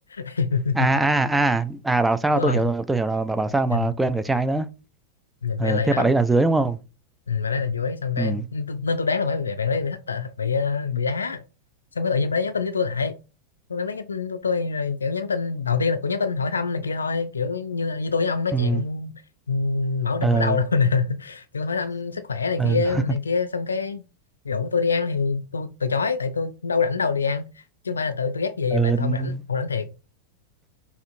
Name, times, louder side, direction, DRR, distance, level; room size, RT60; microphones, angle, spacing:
voice 1, 0.1-1.0 2.3-2.7 3.7-3.9 5.4-6.1 7.3-11.4 11.9-13.1 13.7-19.1 19.5-24.0 24.4-29.9, left 5 dB, 75° left, 0.3 m, -25 dB
voice 2, 0.8-4.7 5.6-6.8 8.2-8.4 18.5-18.8 20.2-20.6 22.6-22.8 28.7-29.4, right 3 dB, 5° right, 0.3 m, -22 dB
5.1 x 2.5 x 2.5 m
figure-of-eight pair, 90°, 0 cm